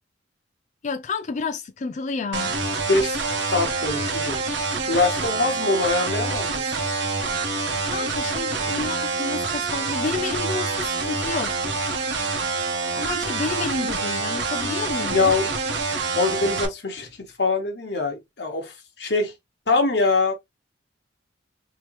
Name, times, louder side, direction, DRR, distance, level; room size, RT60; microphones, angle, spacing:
voice 1, 0.8-2.5 7.9-11.5 12.9-15.2, left 4 dB, 40° left, 0.4 m, -30 dB
sound 1, 2.3-16.7, right 3 dB, 75° right, 1.0 m, -26 dB
voice 2, 2.9-3.2 3.5-4.4 4.9-6.6 15.1-15.5 16.1-17.1 17.4-18.7 19.0-19.3 19.7-20.3, left 3 dB, 60° left, 1.2 m, -23 dB
3.3 x 2.9 x 3.0 m
head